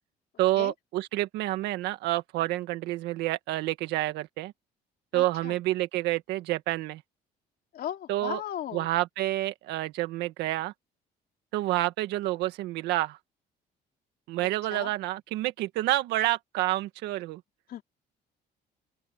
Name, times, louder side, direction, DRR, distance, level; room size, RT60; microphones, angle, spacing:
voice 1, 0.4-4.5 5.1-7.0 8.1-8.4 8.7-10.7 11.5-13.2 14.3-17.4, right 16 dB, 90° right, 1.9 m, -28 dB
voice 2, 5.1-5.6 7.7-8.9 14.7-14.9 17.7-17.8, left 11 dB, 60° left, 3.4 m, -36 dB
open air
cardioid pair, 110°, 17 cm